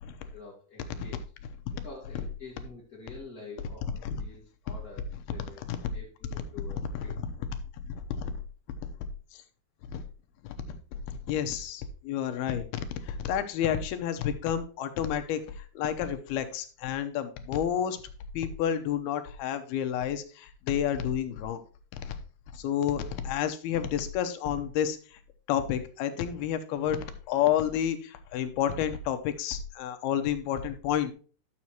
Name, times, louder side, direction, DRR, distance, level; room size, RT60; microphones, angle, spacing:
voice 1, 0.3-1.2 1.8-5.0 5.3-5.6 5.9-7.2, left 3 dB, 45° left, -4 dB, 1.2 m, -47 dB
voice 2, 7.9-8.3 9.3-9.4 9.9-10.0 10.4-10.5 11.1-18.0 18.3-21.6 21.9-22.2 22.5-25.2 25.5-31.1, left 9 dB, 75° left, 8 dB, 2.6 m, -30 dB
11.0 x 7.4 x 2.9 m, 0.39 s
omnidirectional pair, 4.7 m